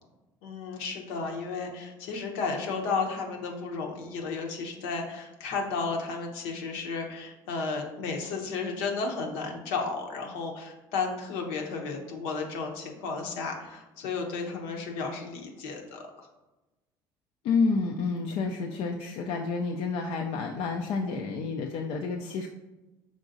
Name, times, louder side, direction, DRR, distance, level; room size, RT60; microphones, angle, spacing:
voice 1, 0.4-16.0 18.7-18.9, left 4 dB, 85° left, 2 dB, 0.8 m, -33 dB
voice 2, 17.4-22.5, left 4 dB, 65° left, 3 dB, 0.4 m, -29 dB
5.0 x 3.6 x 2.6 m, 1.1 s
supercardioid pair, 75°, 11 cm